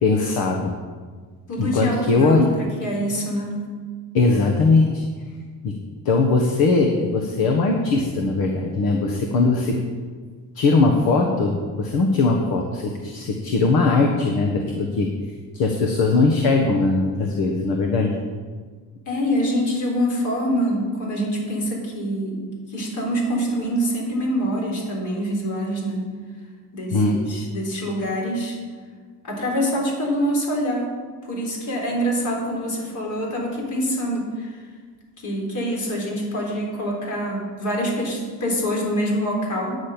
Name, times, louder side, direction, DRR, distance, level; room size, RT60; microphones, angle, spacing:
voice 1, 0.0-0.7 1.6-2.5 4.1-5.0 5.6-5.7 6.0-9.8 10.5-15.1 15.5-18.1 26.9-27.2, left 3 dB, 65° left, 2 dB, 1.4 m, -20 dB
voice 2, 1.5-3.6 19.1-22.4 22.7-26.1 26.7-28.6 29.2-30.9 31.2-34.5 35.2-39.8, equal, 50° left, -1 dB, 3.9 m, -25 dB
9.8 x 6.4 x 8.7 m, 1.5 s
cardioid pair, 150°, 39 cm